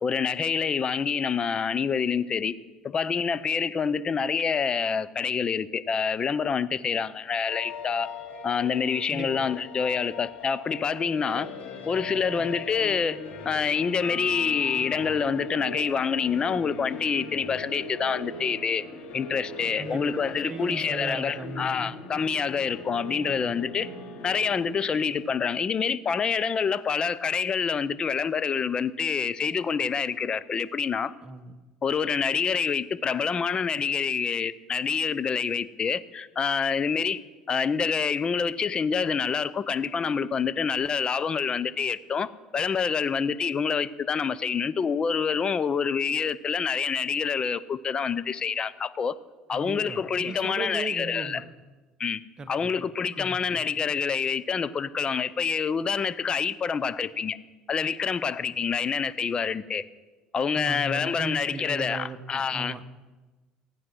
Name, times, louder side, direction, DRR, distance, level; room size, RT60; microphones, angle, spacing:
voice 1, 0.0-2.5 2.8-8.1 8.4-11.5 11.9-13.2 13.4-18.8 19.1-23.9 24.2-31.1 31.8-37.2 37.5-49.2 49.5-51.4 52.0-52.2 52.5-57.4 57.7-59.8 60.3-62.7, left 6 dB, 35° left, 0.7 m, -27 dB
sound 1, 7.5-25.6, left 3 dB, 60° left, 2.7 m, -40 dB
voice 2, 9.1-9.5 12.2-12.5 19.8-21.9 23.2-23.6 31.2-31.5 49.5-51.4 52.4-52.7 53.1-53.7 60.6-62.9, right 3 dB, 30° right, 1.2 m, -37 dB
15.5 x 9.1 x 6.2 m
supercardioid pair, 90°, 3 cm